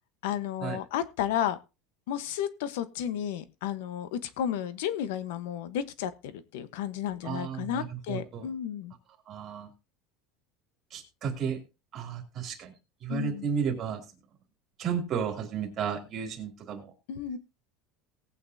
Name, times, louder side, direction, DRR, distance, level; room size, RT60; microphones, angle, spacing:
voice 1, 0.2-1.6 2.1-8.9 13.1-13.5 17.1-17.4, left 10 dB, 80° left, 14 dB, 1.0 m, -32 dB
voice 2, 7.2-8.5 9.3-9.7 10.9-11.6 11.9-12.7 13.0-14.0 14.8-16.9, right 7 dB, 35° right, 3 dB, 2.7 m, -33 dB
18.5 x 8.7 x 2.7 m, 0.27 s
supercardioid pair, 155°, 0 cm